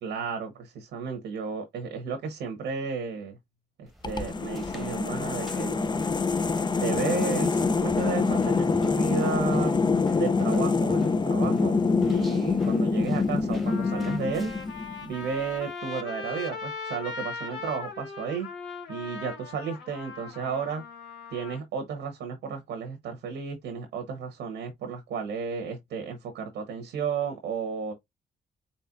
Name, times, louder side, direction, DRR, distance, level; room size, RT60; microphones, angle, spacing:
voice 1, 0.0-3.4 3.8-5.9 6.8-9.7 10.1-11.8 12.0-14.5 15.0-18.5 18.9-20.8 21.3-27.9, right 5 dB, 90° right, 1.1 m, -33 dB
sound 1, 3.9-14.8, right 1 dB, ahead, 1.1 m, -44 dB
sound 2, 4.0-15.1, left 4 dB, 25° left, 0.5 m, -25 dB
Trumpet, 12.9-13.0 13.7-21.6, left 4 dB, 85° left, 1.7 m, -39 dB
4.3 x 4.0 x 2.5 m
cardioid pair, 65°, 18 cm